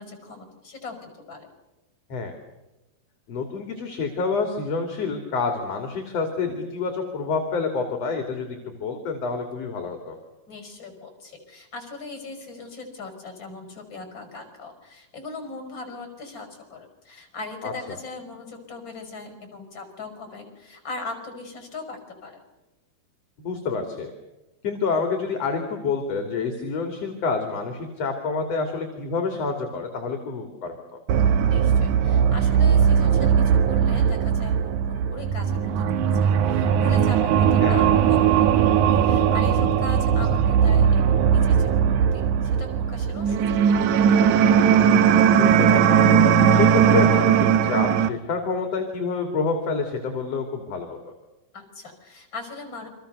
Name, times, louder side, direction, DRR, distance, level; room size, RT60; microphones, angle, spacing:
voice 1, 0.0-1.5 10.5-22.4 31.5-44.3 51.5-52.9, left 3 dB, 30° left, 7 dB, 6.2 m, -39 dB
voice 2, 3.3-10.2 17.6-17.7 23.4-24.1 24.6-30.8 37.6-37.9 45.3-46.0 46.5-51.0, left 4 dB, 45° left, 4 dB, 3.6 m, -28 dB
sound 1, 31.1-48.1, right 8 dB, 65° right, 2.1 m, -19 dB
29.5 x 25.0 x 6.8 m, 1.0 s
omnidirectional pair, 4.5 m